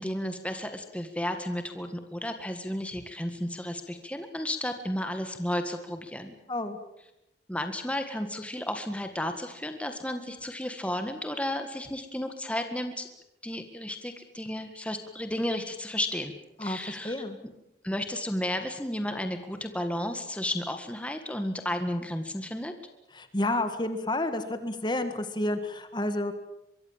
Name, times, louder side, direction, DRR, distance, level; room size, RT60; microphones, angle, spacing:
voice 1, 0.0-6.3 7.5-13.1 13.4-16.3 16.6-17.1 17.8-22.7, left 1 dB, 5° left, 7 dB, 1.7 m, -33 dB
voice 2, 16.6-17.4 23.1-26.3, left 1 dB, 25° left, 9 dB, 1.8 m, -30 dB
24.0 x 23.5 x 7.4 m, 0.86 s
head